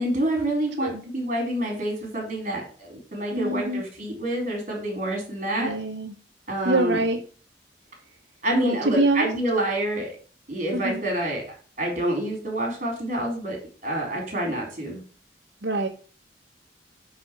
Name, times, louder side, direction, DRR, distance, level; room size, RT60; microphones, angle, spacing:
voice 1, 0.0-5.7 6.5-7.0 8.4-10.1 10.5-11.4 11.8-15.0, right 1 dB, 45° right, 1 dB, 4.3 m, -27 dB
voice 2, 3.3-3.8 5.6-6.1 6.6-7.2 8.6-9.3 10.7-11.0 15.6-15.9, right 2 dB, 75° right, 0 dB, 1.1 m, -24 dB
9.3 x 4.3 x 6.1 m, 0.39 s
head